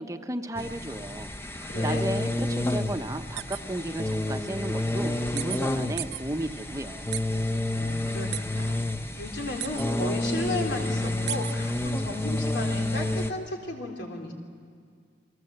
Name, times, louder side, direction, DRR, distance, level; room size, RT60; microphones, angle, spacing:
voice 1, 0.0-7.2, right 1 dB, 20° right, 7 dB, 0.9 m, -34 dB
sound 1, 0.6-13.3, left 1 dB, 15° left, 0.8 m, -29 dB
voice 2, 1.6-2.0 7.7-8.8 9.2-14.3, left 1 dB, 90° left, 2 dB, 4.0 m, -34 dB
sound 2, 3.4-3.6 4.1-4.2 5.4-5.6 6.0-6.2 7.1-7.2 8.3-8.4 9.6-9.8 11.3-11.5, right 13 dB, 70° right, 0.9 m, -33 dB
29.5 x 23.0 x 7.9 m, 2.2 s
head